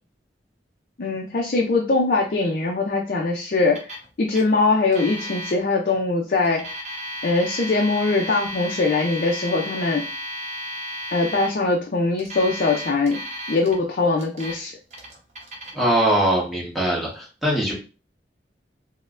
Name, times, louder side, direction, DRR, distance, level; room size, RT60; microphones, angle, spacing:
voice 1, 1.0-6.7 7.2-10.0 11.1-13.2 13.5-14.7, left 3 dB, 50° left, 0 dB, 0.5 m, -22 dB
Alarm, 3.7-4.1 4.3-4.4 4.9-5.5 6.4-11.5 12.2-13.7 14.2-14.6 14.9-15.7, equal, 40° right, 0.8 m, -33 dB
voice 2, 15.7-17.7, right 1 dB, ahead, -6 dB, 1.1 m, -21 dB
4.2 x 2.1 x 2.5 m, 0.34 s
head